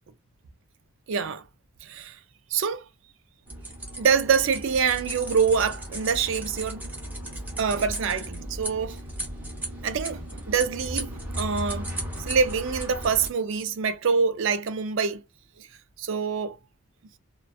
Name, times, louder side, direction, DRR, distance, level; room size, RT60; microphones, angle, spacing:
voice 1, 1.1-1.4 1.8-2.2 2.5-2.8 4.0-6.9 7.6-9.0 9.8-11.1 11.4-11.9 12.3-15.2 16.0-16.6, right 6 dB, 60° right, 0.4 m, -25 dB
sound 1, 3.5-13.3, right 1 dB, 10° right, 0.7 m, -35 dB
2.6 x 2.2 x 2.3 m
head